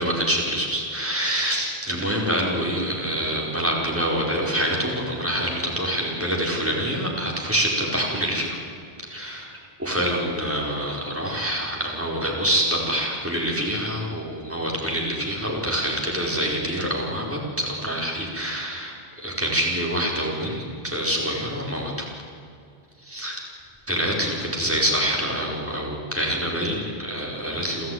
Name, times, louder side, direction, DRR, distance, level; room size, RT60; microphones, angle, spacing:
voice 1, 0.0-8.6 9.1-9.5 9.8-22.1 23.0-23.4 23.9-27.9, equal, 10° right, -2 dB, 4.7 m, -26 dB
29.0 x 14.0 x 9.5 m, 2.4 s
omnidirectional pair, 1.1 m